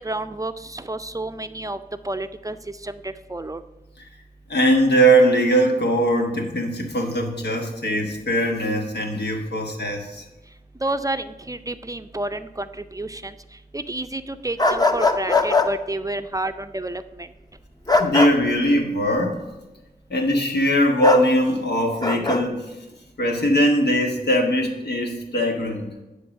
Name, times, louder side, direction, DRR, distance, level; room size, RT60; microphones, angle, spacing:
voice 1, 0.0-1.8 2.0-3.6 10.8-13.4 13.7-17.3, right 2 dB, 20° right, 10 dB, 0.4 m, -30 dB
voice 2, 4.5-10.2 18.0-19.4 20.1-22.7 23.2-25.9, equal, 90° left, 2 dB, 1.3 m, -20 dB
sound 1, 14.6-15.7 17.9-18.3 21.0-21.2 22.0-22.4, left 3 dB, 25° left, 0.7 m, -19 dB
9.9 x 3.9 x 6.2 m, 1.0 s
wide cardioid pair, 50°, 17 cm